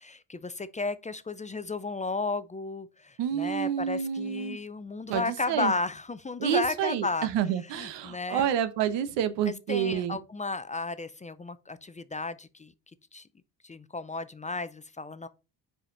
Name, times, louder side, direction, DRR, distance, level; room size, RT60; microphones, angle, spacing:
voice 1, 0.0-7.3 7.7-8.5 9.5-12.7 13.1-13.3 13.6-15.3, left 3 dB, 20° left, 0.5 m, -33 dB
voice 2, 3.2-4.6 5.1-5.7 6.4-10.2, right 9 dB, 85° right, 1.0 m, -29 dB
5.0 x 5.0 x 5.2 m
cardioid pair, 80°, 42 cm